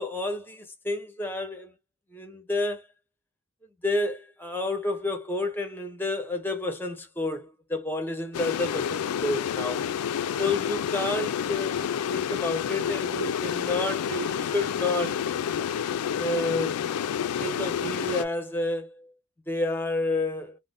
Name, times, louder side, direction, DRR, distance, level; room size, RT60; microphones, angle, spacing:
voice 1, 0.0-1.7 2.1-2.9 3.8-9.8 10.4-15.2 16.2-16.9 17.4-19.1 19.5-20.6, left 2 dB, 10° left, 0.5 m, -30 dB
sound 1, 8.3-18.2, left 8 dB, 90° left, 0.4 m, -29 dB
2.5 x 2.0 x 3.3 m
head